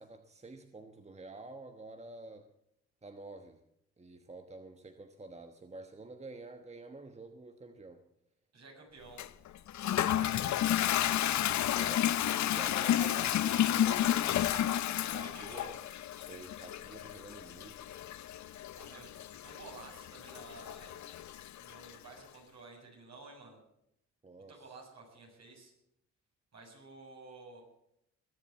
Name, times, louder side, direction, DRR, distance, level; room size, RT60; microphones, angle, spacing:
voice 1, 0.0-2.5 3.0-3.6 4.0-8.0 11.7-14.1 15.1-15.7 16.2-18.0 24.2-24.5, right 3 dB, 20° right, 7 dB, 1.2 m, -49 dB
voice 2, 8.5-9.2 9.8-12.2 13.9-15.8 18.7-21.0 21.6-23.6 24.5-25.7 26.5-27.6, right 3 dB, 60° right, 0 dB, 7.2 m, -52 dB
Toilet flush, 9.2-22.0, left 11 dB, 65° left, 0.7 m, -32 dB
21.0 x 7.3 x 8.4 m, 0.78 s
cardioid pair, 75°, 30 cm